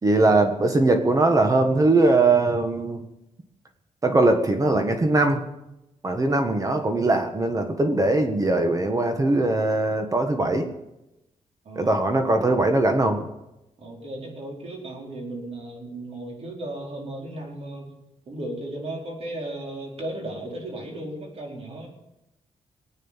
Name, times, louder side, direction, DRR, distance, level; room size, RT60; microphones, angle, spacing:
voice 1, 0.0-3.0 4.0-5.4 6.0-10.7 11.7-13.3, right 2 dB, 25° right, 6 dB, 1.4 m, -21 dB
voice 2, 11.6-12.0 13.8-17.9 18.3-21.9, right 1 dB, 55° right, 0 dB, 4.7 m, -35 dB
19.5 x 9.2 x 7.3 m, 0.93 s
cardioid pair, 120°, 12 cm